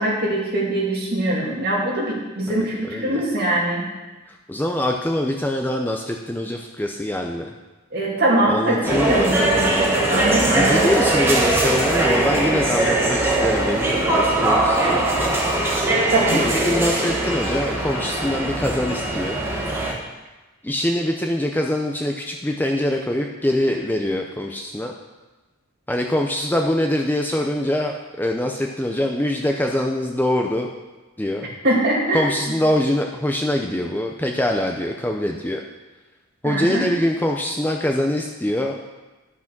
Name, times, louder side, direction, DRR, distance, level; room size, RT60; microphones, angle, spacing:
voice 1, 0.0-3.9 7.9-10.8 13.8-13.9 16.1-16.5 31.6-32.2 36.4-36.9, right 1 dB, 45° right, -4 dB, 2.6 m, -22 dB
voice 2, 2.5-3.2 4.3-7.5 8.5-9.4 10.3-15.3 16.3-19.4 20.6-24.9 25.9-30.7 31.2-31.5 32.1-35.6 36.4-38.8, left 1 dB, 10° left, 2 dB, 0.5 m, -24 dB
sound 1, 8.8-19.9, right 2 dB, 10° right, 1.3 m, -21 dB
11.0 x 6.0 x 6.0 m, 1.2 s
head